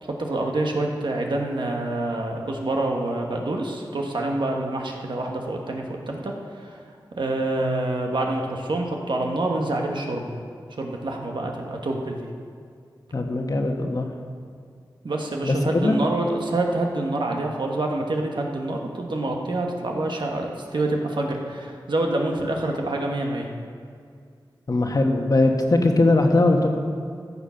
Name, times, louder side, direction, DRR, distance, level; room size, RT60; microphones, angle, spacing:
voice 1, 0.0-6.8 7.2-10.4 10.7-12.2 15.0-23.5, right 2 dB, 70° right, 1 dB, 1.4 m, -27 dB
voice 2, 13.1-14.1 15.4-16.0 24.7-26.8, left 2 dB, 50° left, 3 dB, 1.3 m, -20 dB
13.5 x 7.3 x 5.8 m, 2.2 s
wide cardioid pair, 70°, 8 cm